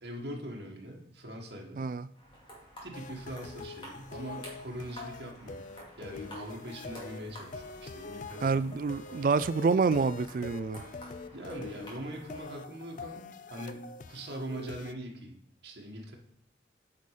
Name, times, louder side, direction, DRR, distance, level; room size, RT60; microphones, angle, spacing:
voice 1, 0.0-1.9 2.8-5.6 6.0-8.7 9.1-9.3 11.3-13.8 14.1-16.2, right 1 dB, 75° right, 1.8 m, -42 dB
sound 1, 2.1-12.5, equal, 30° left, 2.4 m, -51 dB
sound 2, 2.9-14.9, left 4 dB, 45° left, 0.3 m, -45 dB
voice 2, 8.4-10.8, right 4 dB, 50° right, 0.3 m, -27 dB
8.4 x 5.4 x 4.9 m
head